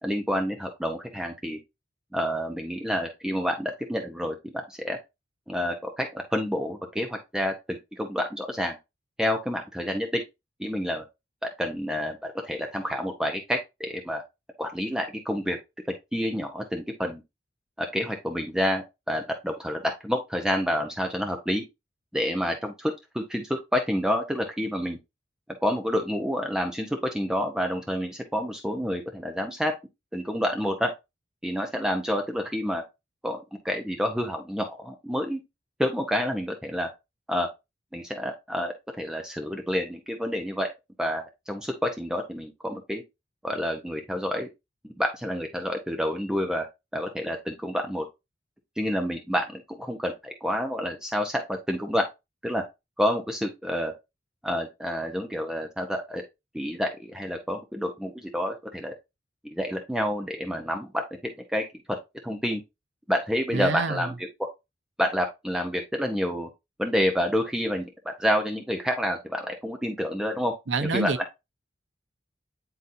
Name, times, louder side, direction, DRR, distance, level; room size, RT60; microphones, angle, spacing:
voice 1, 0.0-1.6 2.1-5.0 5.5-8.8 9.2-10.2 10.6-11.0 11.4-14.2 14.6-15.6 16.1-17.2 17.8-21.6 22.1-25.0 25.6-29.7 30.1-30.9 31.4-32.8 33.2-35.4 35.8-36.9 37.3-37.5 37.9-40.7 41.0-43.0 43.4-44.5 44.8-46.7 46.9-48.1 48.8-52.1 52.4-52.6 53.0-53.9 54.4-56.2 56.5-58.9 59.4-62.0 62.2-62.6 63.1-64.5 65.0-66.5 66.8-70.5 70.9-71.2, equal, 5° right, 0.8 m, -28 dB
voice 2, 63.5-64.1 70.7-71.2, right 3 dB, 85° right, 0.7 m, -27 dB
9.0 x 4.0 x 2.7 m
head